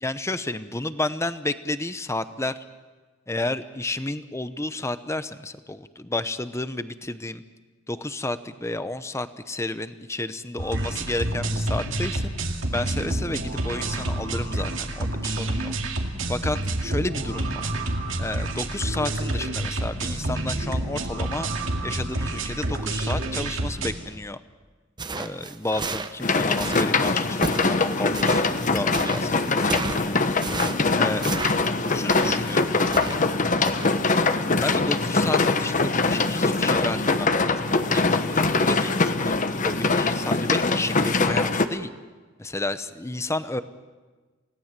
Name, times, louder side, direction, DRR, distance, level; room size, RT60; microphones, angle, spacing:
voice 1, 0.0-2.5 3.3-7.4 7.9-12.3 12.7-15.7 16.3-17.7 18.2-21.5 21.8-24.4 25.1-30.2 31.0-31.3 31.9-33.5 34.6-41.9 42.4-43.6, left 2 dB, 15° left, 12 dB, 0.8 m, -31 dB
sound 1, 10.6-23.9, right 1 dB, 70° right, 2.3 m, -28 dB
sound 2, 25.0-33.3 33.6-33.9, right 3 dB, 20° right, 0.9 m, -33 dB
sound 3, 26.2-41.7, left 3 dB, 40° left, 1.1 m, -23 dB
28.5 x 17.5 x 7.5 m, 1.3 s
head